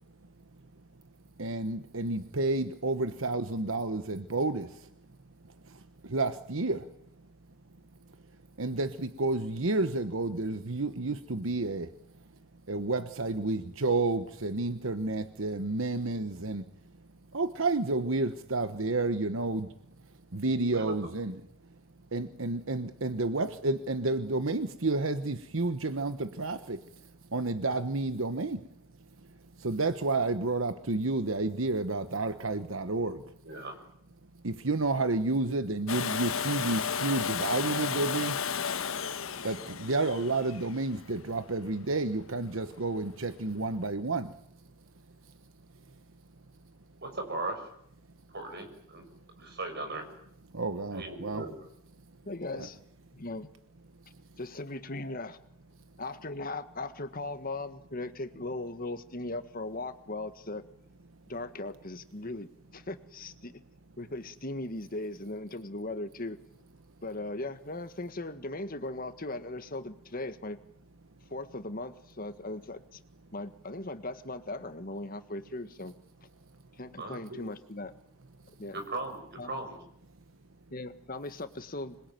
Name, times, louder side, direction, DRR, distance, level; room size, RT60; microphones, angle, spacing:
voice 1, 1.4-4.9 5.7-6.9 8.6-11.9 12.7-16.7 17.3-19.7 20.3-21.4 22.1-26.9 27.3-28.7 29.6-33.2 34.4-38.4 39.4-44.3 50.5-51.5, right 2 dB, 75° right, 1.2 m, -30 dB
Domestic sounds home sounds, 35.9-41.7 43.6-43.7, left 7 dB, 85° left, 1.2 m, -33 dB
voice 2, 47.0-47.6 48.3-49.0 49.4-50.0 50.9-51.5 77.0-77.2 78.7-79.8, right 2 dB, 55° right, 6.7 m, -37 dB
voice 3, 52.2-52.8 53.1-53.5 54.4-55.4 56.0-60.6 61.3-63.6 64.0-66.4 67.0-70.6 71.3-73.0 73.3-75.9 76.8-77.9 78.6-78.8 79.4-79.6 80.7-82.0, left 2 dB, 45° left, 1.6 m, -38 dB
26.5 x 22.0 x 9.3 m
head